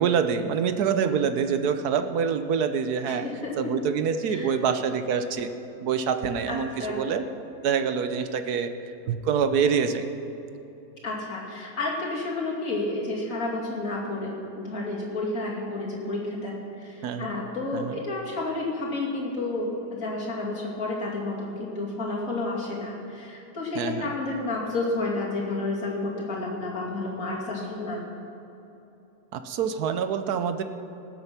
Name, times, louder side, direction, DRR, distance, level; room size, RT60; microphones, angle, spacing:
voice 1, 0.0-3.3 3.6-5.5 5.8-7.2 7.6-8.7 9.1-10.1 17.0-17.4 17.7-18.0 23.7-24.1 29.3-30.6, right 6 dB, 80° right, 9 dB, 1.3 m, -26 dB
voice 2, 3.0-3.5 4.3-4.5 6.5-7.0 11.0-28.0, left 2 dB, 60° left, -3 dB, 2.9 m, -31 dB
19.0 x 7.8 x 6.0 m, 3.0 s
omnidirectional pair, 1.6 m